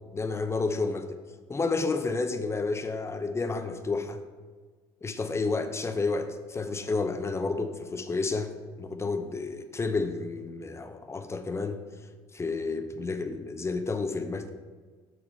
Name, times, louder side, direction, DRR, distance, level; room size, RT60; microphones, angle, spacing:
voice 1, 0.1-1.2 1.5-4.2 5.0-8.5 8.8-11.8 12.3-14.5, left 3 dB, 20° left, 8 dB, 0.7 m, -30 dB
6.1 x 6.0 x 4.0 m, 1.5 s
hypercardioid pair, 75°, 13 cm